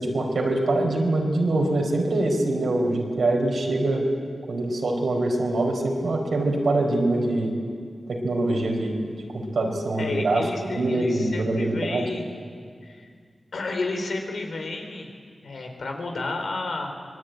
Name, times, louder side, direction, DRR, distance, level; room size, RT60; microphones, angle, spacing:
voice 1, 0.0-4.0 4.5-7.5 8.1-8.9 9.3-12.1, right 2 dB, 85° right, 1 dB, 4.5 m, -24 dB
voice 2, 10.0-12.3 12.8-13.1 13.5-15.1 15.4-16.9, left 3 dB, 85° left, 3 dB, 4.0 m, -31 dB
25.0 x 20.5 x 9.3 m, 2.1 s
wide cardioid pair, 75°, 0 cm